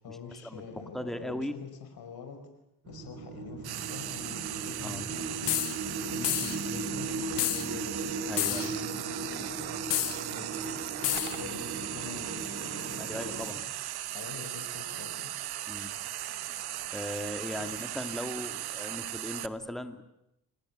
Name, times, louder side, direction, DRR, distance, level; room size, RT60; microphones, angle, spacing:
voice 1, 0.0-2.4 2.9-5.5 6.0-9.8 10.3-13.5 14.1-15.1 17.7-17.8, left 5 dB, 65° left, 6 dB, 5.3 m, -46 dB
voice 2, 0.9-1.5 4.8-5.1 8.3-8.8 13.0-13.6 15.7-15.9 16.9-20.0, left 1 dB, ahead, 8 dB, 2.6 m, -37 dB
sound 1, 2.9-13.5, right 2 dB, 40° right, 5.8 m, -38 dB
Frying (food), 3.6-19.5, right 13 dB, 70° right, 1.1 m, -37 dB
sound 2, 5.5-5.8 6.2-6.6 7.4-7.7 8.4-8.7 9.9-10.2 11.0-11.4, left 18 dB, 90° left, 1.1 m, -29 dB
27.0 x 18.5 x 9.6 m, 0.84 s
supercardioid pair, 70°, 40 cm